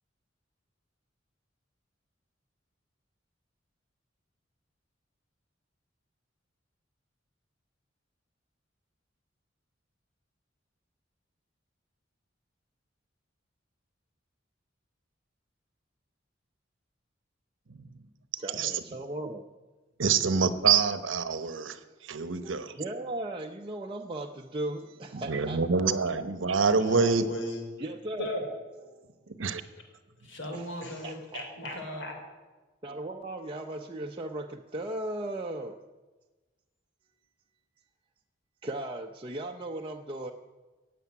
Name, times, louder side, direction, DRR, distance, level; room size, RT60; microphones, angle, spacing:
voice 1, 18.4-19.5 20.0-20.1 22.3-25.9 27.8-28.3 29.0-29.1 30.5-30.6 31.0-31.8 32.8-35.8 38.6-40.3, right 1 dB, 25° right, 1 dB, 0.7 m, -37 dB
voice 2, 20.0-21.8 22.1-22.8 25.3-27.3 29.4-29.6, right 5 dB, 85° right, 11 dB, 1.0 m, -26 dB
voice 3, 26.6-27.6 28.2-28.5 30.2-32.2, left 1 dB, 70° left, 3 dB, 3.7 m, -36 dB
15.5 x 8.4 x 9.5 m, 1.2 s
head